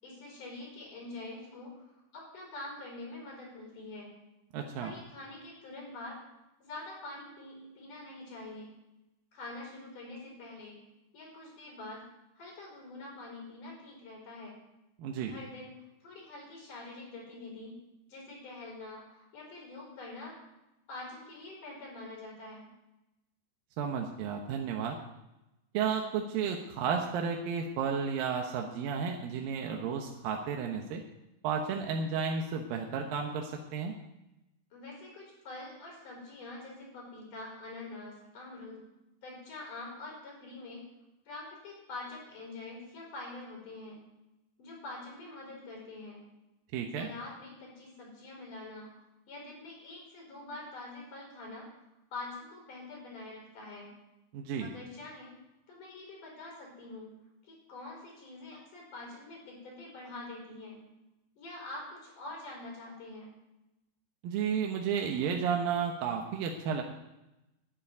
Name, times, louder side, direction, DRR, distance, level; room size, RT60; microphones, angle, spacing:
voice 1, 0.0-1.8 2.1-4.1 4.8-6.2 6.6-8.7 9.3-10.8 11.1-12.0 12.3-14.5 15.3-15.7 16.0-17.8 18.1-20.4 20.9-22.7 34.7-38.8 39.2-40.8 41.3-44.0 44.6-46.2 46.9-48.9 49.3-51.7 52.1-53.9 54.6-55.3 55.7-57.1 57.4-60.8 61.4-63.3, left 2 dB, 50° left, -2 dB, 6.3 m, -45 dB
voice 2, 4.5-4.9 15.0-15.3 23.8-25.0 25.7-31.0 31.4-33.9 46.7-47.1 54.3-54.7 64.2-66.8, right 6 dB, 70° right, 2 dB, 2.5 m, -32 dB
12.0 x 7.5 x 9.5 m, 0.95 s
omnidirectional pair, 4.8 m